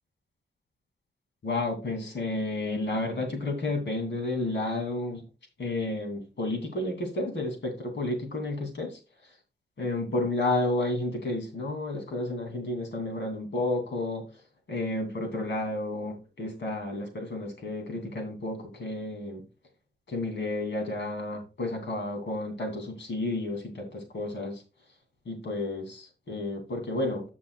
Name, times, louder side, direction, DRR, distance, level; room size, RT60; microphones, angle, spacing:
voice 1, 1.4-5.3 5.6-9.0 9.8-14.3 14.7-19.4 20.1-24.6 25.2-27.2, left 2 dB, 80° left, 2 dB, 2.9 m, -31 dB
14.5 x 6.1 x 2.4 m, 0.31 s
wide cardioid pair, 135°, 18 cm